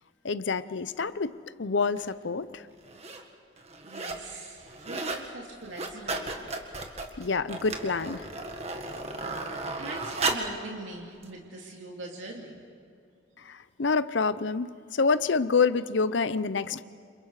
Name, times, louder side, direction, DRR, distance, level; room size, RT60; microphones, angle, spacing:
voice 1, 0.2-1.3 1.6-2.6 7.2-8.3 13.5-16.8, left 4 dB, 70° left, 14 dB, 0.7 m, -27 dB
sound 1, 2.0-2.1 2.8-3.2 3.6-4.3 4.6-5.3 5.6-10.6 11.2-11.3, right 3 dB, 35° right, 1.9 m, -34 dB
voice 2, 3.8-6.6 9.3-12.6, right 2 dB, 80° right, -2 dB, 2.8 m, -42 dB
30.0 x 27.5 x 4.9 m, 2.3 s
head